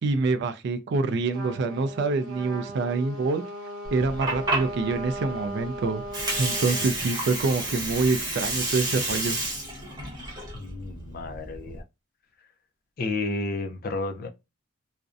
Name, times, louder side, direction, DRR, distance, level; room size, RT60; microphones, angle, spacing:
voice 1, 0.0-3.4 3.9-6.0 6.4-9.4, right 3 dB, 50° right, 0.3 m, -26 dB
Trumpet, 1.3-7.0, right 1 dB, 70° right, 0.9 m, -38 dB
Water, 3.9-11.8, right 2 dB, 20° right, 0.7 m, -31 dB
voice 2, 10.5-11.8 13.0-14.3, left 2 dB, 40° left, 0.4 m, -31 dB
2.5 x 2.1 x 2.4 m
head